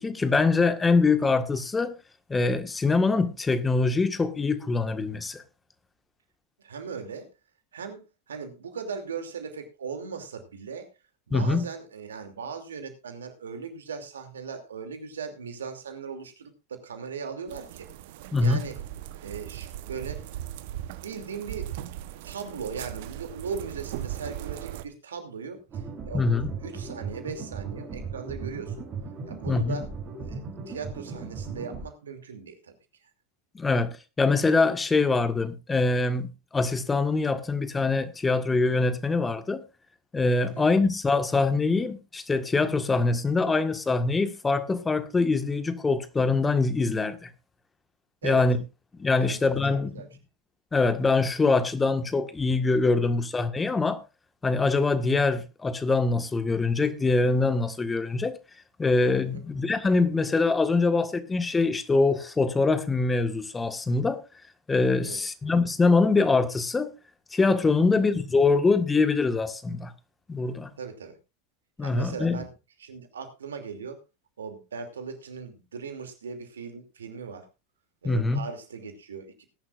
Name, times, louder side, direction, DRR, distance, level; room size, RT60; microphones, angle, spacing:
voice 1, 0.0-1.9 2.3-5.4 11.3-11.7 18.3-18.7 26.1-26.5 29.5-29.8 33.5-33.9 34.2-39.6 40.1-47.3 48.2-48.6 49.0-49.9 50.7-54.0 54.4-58.4 58.8-64.2 64.7-66.9 67.3-69.9 70.3-70.7 71.8-72.4 78.0-78.4, left 3 dB, 15° left, 1.6 m, -24 dB
voice 2, 6.6-7.3 7.7-8.0 8.3-10.9 11.3-17.9 18.4-18.8 19.2-20.2 20.8-21.7 22.2-28.9 29.2-29.9 30.2-32.7 40.4-40.7 48.2-48.5 49.2-49.6 49.9-50.1 59.2-59.4 65.0-65.2 67.8-68.0 70.8-71.2 71.8-72.5 72.8-74.0 74.4-77.5 78.0-79.4, right 5 dB, 75° right, 2.7 m, -38 dB
sound 1, 17.5-24.8, right 13 dB, 60° right, 1.0 m, -38 dB
sound 2, 25.7-31.8, right 5 dB, 35° right, 6.5 m, -37 dB
20.0 x 11.0 x 2.5 m
figure-of-eight pair, 90°, 0 cm